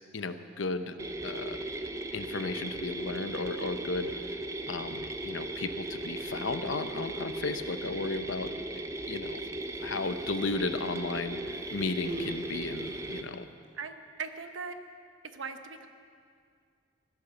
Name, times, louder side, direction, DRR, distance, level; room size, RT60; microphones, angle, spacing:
voice 1, 0.1-1.0 1.2-1.6 2.1-4.1 4.7-9.4 9.8-13.4, left 3 dB, 85° left, 10 dB, 0.9 m, -34 dB
sound 1, 1.0-13.2, right 2 dB, 15° right, 0.6 m, -37 dB
Human voice, 9.6-10.5 11.4-13.4 14.3-14.4, right 1 dB, 35° right, 3.4 m, -43 dB
voice 2, 13.7-14.8 15.3-15.9, right 5 dB, 85° right, 8 dB, 1.1 m, -39 dB
15.5 x 11.5 x 7.0 m, 2.2 s
head